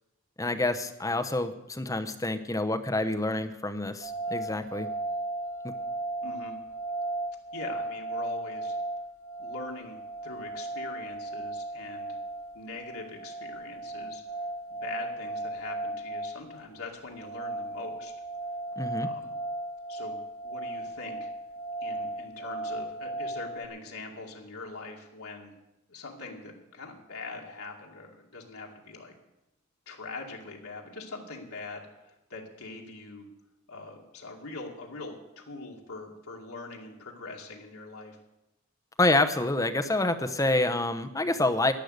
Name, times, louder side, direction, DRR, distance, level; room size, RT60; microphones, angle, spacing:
voice 1, 0.4-4.9 5.6-5.7 18.8-19.1 39.0-41.7, left 2 dB, 15° left, 8 dB, 0.8 m, -27 dB
sound 1, 4.0-23.7, right 2 dB, 65° right, 1.4 m, -36 dB
voice 2, 6.2-6.5 7.5-8.8 9.4-12.2 12.5-14.2 14.7-18.1 19.0-19.3 19.9-21.3 21.8-25.5 25.9-29.1 29.9-33.3 33.7-38.2, left 3 dB, 80° left, -1 dB, 2.2 m, -42 dB
11.5 x 10.5 x 8.0 m, 0.91 s
head